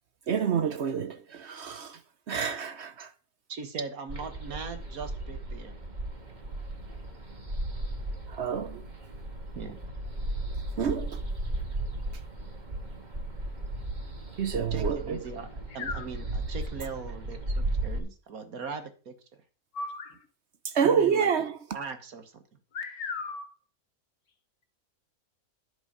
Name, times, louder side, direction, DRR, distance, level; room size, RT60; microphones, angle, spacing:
voice 1, 0.3-2.0 2.3-3.1 8.3-8.8 10.8-11.2 14.4-15.2 20.7-21.5, right 7 dB, 55° right, 0.9 m, -28 dB
voice 2, 3.5-5.8 9.6-9.8 14.7-19.4 20.8-21.3 21.7-22.4, right 5 dB, 70° right, 1.9 m, -40 dB
sound 1, 4.1-18.0, right 1 dB, 30° right, 1.9 m, -35 dB
voice 3, 19.7-20.3 22.7-23.5, left 4 dB, 80° left, 1.9 m, -36 dB
10.5 x 8.0 x 5.0 m
omnidirectional pair, 1.6 m